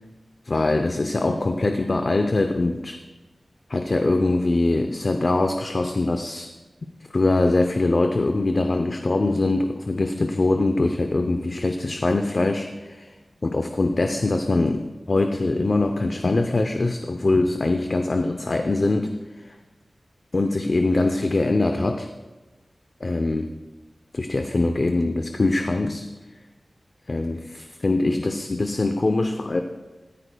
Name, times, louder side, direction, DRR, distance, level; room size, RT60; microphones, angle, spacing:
voice 1, 0.4-3.0 3.7-6.5 7.1-13.1 13.4-19.6 20.3-22.1 23.0-23.5 24.1-26.0 27.1-29.6, left 2 dB, 45° left, 6 dB, 0.6 m, -23 dB
14.0 x 14.0 x 2.3 m, 1.2 s
wide cardioid pair, 85°, 0 cm